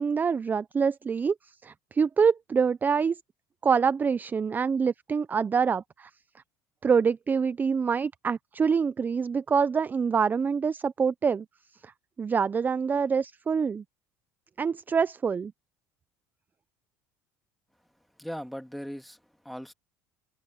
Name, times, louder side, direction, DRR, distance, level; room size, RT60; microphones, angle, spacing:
voice 1, 0.0-1.3 1.6-3.2 3.6-6.1 6.8-11.5 11.8-11.9 12.2-13.8 14.6-15.5, right 6 dB, 25° right, 0.5 m, -25 dB
voice 2, 18.2-19.7, equal, ahead, 2.3 m, -39 dB
supercardioid pair, 90°, 7 cm